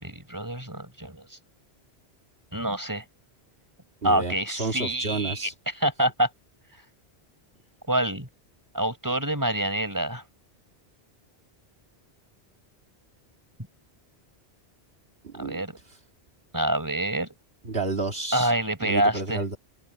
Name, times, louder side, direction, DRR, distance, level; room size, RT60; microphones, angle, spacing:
voice 1, 0.0-1.4 2.5-3.0 4.0-6.3 7.9-8.3 8.7-10.2 15.4-15.8 16.5-17.3 18.3-19.4, right 1 dB, 20° right, 5.2 m, -26 dB
voice 2, 4.0-5.5 15.2-15.6 17.7-18.5 18.8-19.6, right 3 dB, 65° right, 2.3 m, -30 dB
omnidirectional pair, 1.1 m